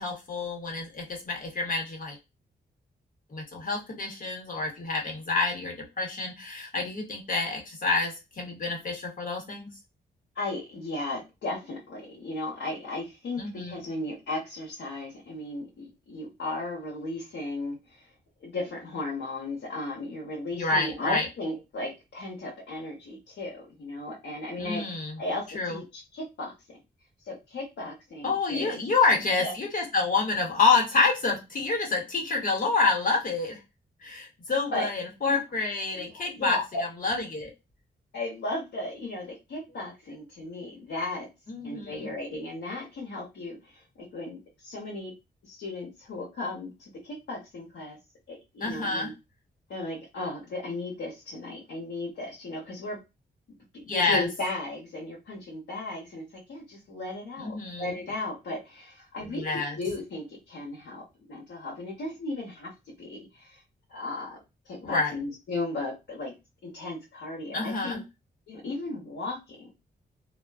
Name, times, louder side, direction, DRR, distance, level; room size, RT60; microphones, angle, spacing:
voice 1, 0.0-2.2 3.3-9.7 13.4-13.8 20.6-21.3 24.6-25.1 25.5-25.8 28.2-33.6 34.0-37.5 41.5-42.1 48.6-49.1 53.9-54.2 57.4-58.0 59.3-59.8 64.8-65.1 67.5-68.0, left 3 dB, 50° left, 0 dB, 1.0 m, -28 dB
voice 2, 10.3-18.1 18.4-26.8 27.2-28.8 29.4-29.5 34.7-34.9 35.3-35.4 35.9-36.8 38.1-41.3 41.6-45.1 45.4-48.0 48.3-49.1 49.7-53.0 53.7-62.7 63.0-63.6 63.9-64.3 64.6-66.3 66.6-68.0 68.5-69.7, left 2 dB, 85° left, -3 dB, 0.9 m, -36 dB
2.4 x 2.2 x 2.2 m, 0.24 s
wide cardioid pair, 105°, 18 cm